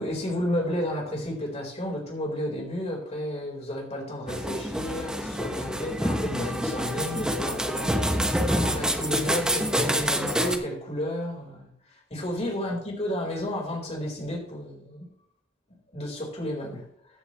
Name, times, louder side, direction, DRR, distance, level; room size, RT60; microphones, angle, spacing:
voice 1, 0.0-15.1 15.9-16.9, left 1 dB, 35° left, 4.4 m, -32 dB
sound 1, 4.3-10.6, equal, 5° right, 1.1 m, -27 dB
15.0 x 9.9 x 3.2 m
head